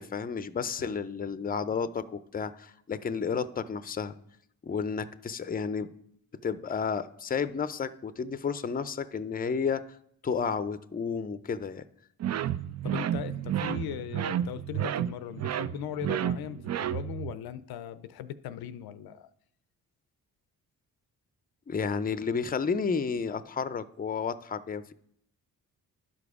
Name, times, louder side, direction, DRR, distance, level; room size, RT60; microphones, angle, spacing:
voice 1, 0.0-4.1 4.6-5.9 6.4-10.0 10.2-11.8 21.7-24.9, left 6 dB, 25° left, 14 dB, 0.5 m, -31 dB
sound 1, 12.2-17.3, right 10 dB, 45° right, 0.4 m, -31 dB
voice 2, 12.8-19.3, left 10 dB, 75° left, 14 dB, 0.5 m, -39 dB
11.0 x 4.9 x 4.8 m, 0.71 s
supercardioid pair, 55°, 38 cm